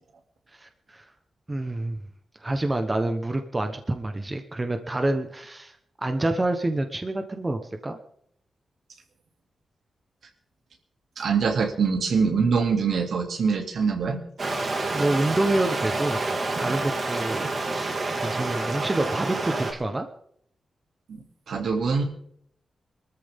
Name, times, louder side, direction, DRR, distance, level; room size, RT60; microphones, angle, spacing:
voice 1, 0.6-1.0 1.5-2.0 2.4-8.0 14.9-16.2 16.6-20.1, right 2 dB, 20° right, 6 dB, 1.2 m, -27 dB
voice 2, 11.2-14.2 21.1-22.0, right 5 dB, 75° right, 3 dB, 2.7 m, -24 dB
Stream, 14.4-19.7, right 2 dB, 45° right, 3.1 m, -28 dB
23.5 x 13.5 x 3.7 m, 0.67 s
wide cardioid pair, 140°, 0 cm